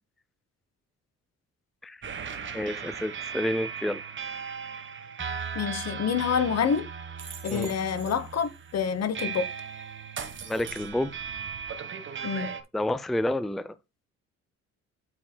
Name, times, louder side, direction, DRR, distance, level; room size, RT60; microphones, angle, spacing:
sound 1, 2.0-12.6, right 6 dB, 40° right, 1.3 m, -37 dB
voice 1, 2.5-4.0 7.5-7.7 10.5-11.1 12.7-13.7, left 1 dB, ahead, 0.5 m, -29 dB
voice 2, 5.5-6.9 7.4-9.5 12.2-12.5, left 7 dB, 55° left, 1.1 m, -27 dB
8.7 x 7.0 x 2.2 m
cardioid pair, 90°, 30 cm